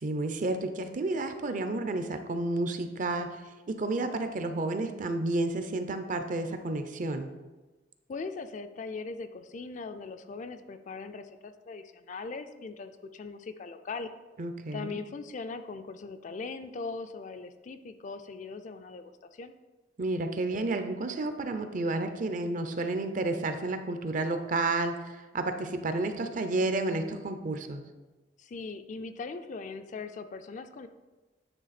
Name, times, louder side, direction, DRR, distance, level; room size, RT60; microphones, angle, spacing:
voice 1, 0.0-3.4 3.7-7.3 14.4-15.0 20.0-27.8, right 2 dB, 45° right, 8 dB, 0.5 m, -31 dB
voice 2, 8.1-14.1 14.7-19.5 28.4-30.9, left 4 dB, 45° left, 9 dB, 0.3 m, -40 dB
9.2 x 3.3 x 4.1 m, 1.2 s
head